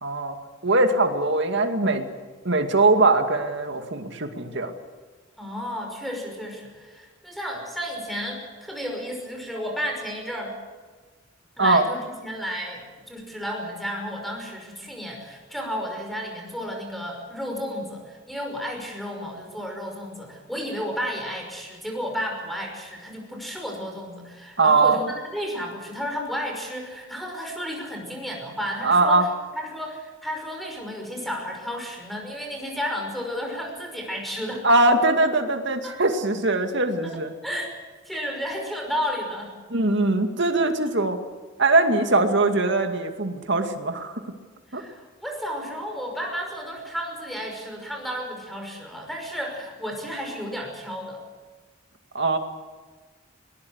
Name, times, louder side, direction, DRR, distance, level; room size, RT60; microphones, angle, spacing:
voice 1, 0.0-0.4 0.6-2.1 2.4-4.7 11.6-11.8 24.6-25.0 28.8-29.3 34.6-37.3 39.7-41.2 41.6-44.2 44.7-44.8 52.1-52.4, right 2 dB, 60° right, 6 dB, 2.2 m, -21 dB
voice 2, 5.4-10.5 11.6-29.3 29.5-34.7 35.8-36.0 37.0-37.1 37.4-37.7 38.0-39.5 44.7-51.2, equal, ahead, 1 dB, 5.6 m, -32 dB
21.0 x 20.0 x 8.1 m, 1.4 s
head